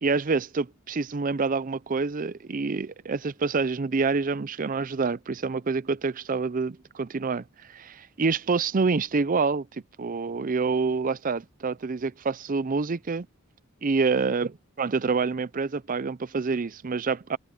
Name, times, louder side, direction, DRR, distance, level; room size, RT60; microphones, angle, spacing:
voice 1, 0.0-13.3 13.8-17.4, right 4 dB, 40° right, 0.5 m, -27 dB
head